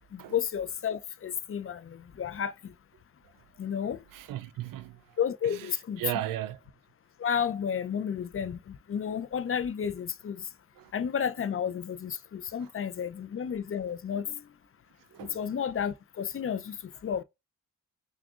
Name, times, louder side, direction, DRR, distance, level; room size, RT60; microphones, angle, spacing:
voice 1, 0.1-2.7 3.6-4.0 5.2-6.0 7.2-10.5 10.9-14.4 15.2-16.8 17.0-17.2, left 8 dB, 40° left, 0.5 m, -32 dB
voice 2, 4.1-5.2 5.4-6.6 10.8-10.9 12.6-12.7 15.1-15.4, right 14 dB, 70° right, 0.5 m, -36 dB
5.8 x 2.4 x 2.4 m
supercardioid pair, 50°, 36 cm